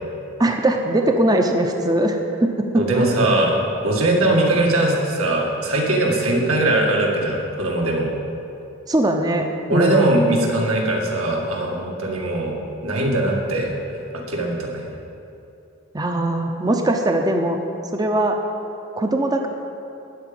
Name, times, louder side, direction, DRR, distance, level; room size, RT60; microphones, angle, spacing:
voice 1, 0.4-3.0 8.9-10.1 15.9-17.6 17.9-18.4 19.0-19.5, right 1 dB, 20° right, 4 dB, 0.6 m, -20 dB
voice 2, 2.8-3.6 3.8-8.1 9.7-12.6 12.8-13.7 14.3-14.9, right 1 dB, 75° right, -1 dB, 2.0 m, -20 dB
13.5 x 5.1 x 8.7 m, 2.8 s
head